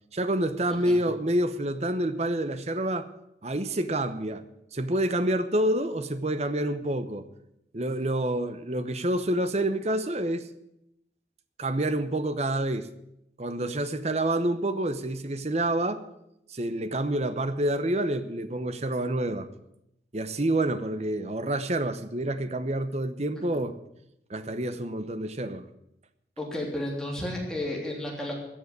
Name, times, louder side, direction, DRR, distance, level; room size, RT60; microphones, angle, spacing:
voice 1, 0.1-3.1 3.4-4.4 4.7-7.3 7.7-10.5 11.6-12.9 13.4-16.0 16.5-19.5 20.1-23.8 24.3-25.7, right 1 dB, 35° right, 0.9 m, -28 dB
voice 2, 26.4-28.3, left 1 dB, 5° left, 3.4 m, -32 dB
14.5 x 7.8 x 9.6 m
head